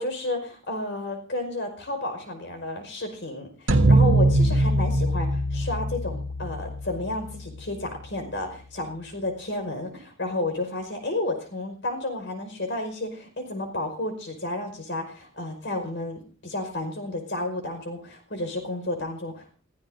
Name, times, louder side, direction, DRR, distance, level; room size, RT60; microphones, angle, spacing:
voice 1, 0.0-19.6, left 2 dB, 65° left, 5 dB, 5.3 m, -32 dB
sound 1, 3.7-8.0, right 1 dB, 85° right, 1.5 m, -22 dB
29.0 x 16.0 x 2.7 m, 0.39 s
head